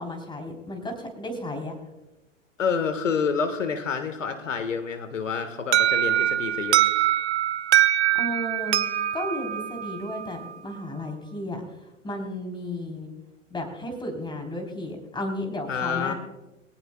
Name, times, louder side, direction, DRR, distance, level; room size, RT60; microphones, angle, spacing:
voice 1, 0.0-1.8 8.1-8.8 9.1-11.6 12.0-13.1 13.5-16.1, left 1 dB, 10° left, 3 dB, 3.5 m, -33 dB
voice 2, 2.6-6.8 15.7-16.1, left 6 dB, 75° left, 9 dB, 1.6 m, -28 dB
Alarm, 5.7-10.5, right 13 dB, 60° right, 0.7 m, -23 dB
23.5 x 18.0 x 2.3 m, 1.0 s
figure-of-eight pair, 95°, 38 cm